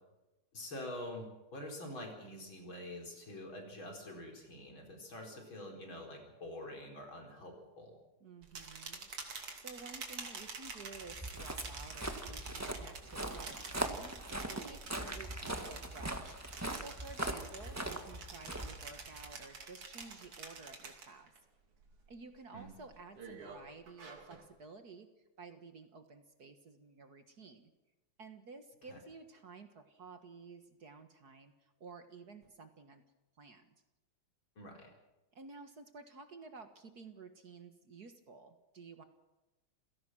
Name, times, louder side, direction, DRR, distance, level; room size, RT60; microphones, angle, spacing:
voice 1, 0.5-8.0 22.5-22.8 28.9-29.0 34.6-34.9, left 1 dB, 65° left, 2 dB, 5.3 m, -46 dB
voice 2, 8.2-16.4 16.7-21.3 22.1-25.1 25.4-27.7 28.2-33.0 33.4-33.7 35.3-39.0, right 4 dB, 50° right, 8 dB, 1.8 m, -53 dB
sound 1, 8.4-21.4 21.7-22.2 22.6-24.5, right 4 dB, 90° right, 3.6 m, -48 dB
Walk footsteps, 11.0-19.3, right 1 dB, 10° right, 1.2 m, -41 dB
28.5 x 17.0 x 6.2 m, 1.0 s
omnidirectional pair, 2.4 m